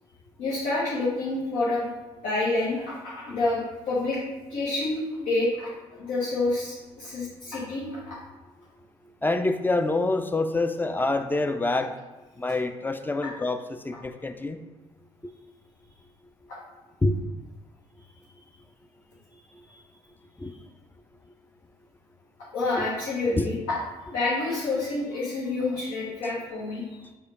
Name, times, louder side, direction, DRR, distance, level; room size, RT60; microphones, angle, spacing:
voice 1, 0.4-1.9 2.2-4.2 4.5-8.2 16.5-16.6 19.7-19.8 22.5-23.8 24.1-27.0, left 2 dB, 75° left, -8 dB, 0.9 m, -28 dB
voice 2, 9.2-12.0 12.4-14.6 17.0-17.2 19.5-19.6 20.4-20.5 22.8-22.9 23.3-23.5, left 2 dB, 15° left, 8 dB, 0.4 m, -26 dB
4.9 x 2.3 x 4.2 m, 1.2 s
hypercardioid pair, 45°, 15 cm